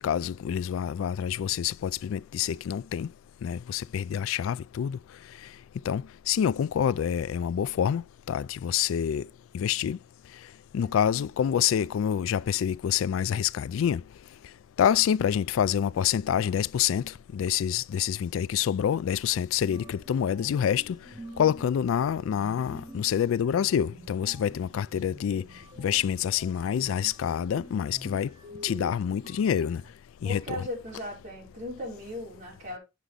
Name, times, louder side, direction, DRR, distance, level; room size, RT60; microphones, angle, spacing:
voice 1, 0.0-3.1 3.4-5.0 5.9-8.0 8.3-9.3 9.5-10.0 10.7-14.0 14.8-21.0 21.4-25.4 25.8-28.3 28.6-29.8 30.2-30.7, left 9 dB, 90° left, 0.3 m, -27 dB
sound 1, 19.6-29.9, right 2 dB, 25° right, 2.4 m, -48 dB
voice 2, 30.2-32.8, left 1 dB, 40° right, 4.3 m, -37 dB
8.2 x 6.0 x 3.7 m
head